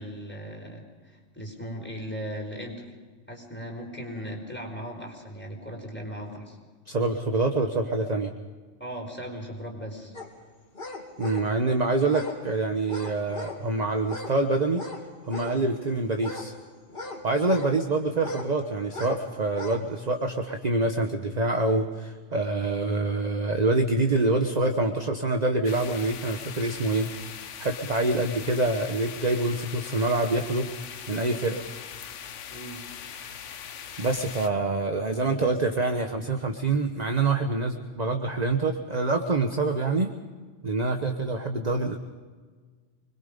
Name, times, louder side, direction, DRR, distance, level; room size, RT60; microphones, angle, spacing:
voice 1, 0.0-2.8 3.3-6.6 8.8-10.2 32.5-32.8, equal, 10° left, 0 dB, 4.9 m, -38 dB
voice 2, 6.9-8.3 11.2-14.8 15.3-16.5 17.2-30.7 31.1-31.6 33.2-33.5 34.0-40.1 40.6-42.0, right 2 dB, 35° right, 5 dB, 1.2 m, -26 dB
sound 1, 10.1-10.3 10.8-11.5 12.1-12.4 12.9-13.6 14.0-14.4 14.7-15.6 16.2-17.7 18.2-18.5 18.9-19.2 19.5-19.8 20.3-20.4, left 2 dB, 40° left, 2.9 m, -38 dB
sound 2, 25.6-34.5, left 8 dB, 70° left, 1.2 m, -41 dB
25.5 x 21.5 x 5.3 m, 1.5 s
omnidirectional pair, 1.3 m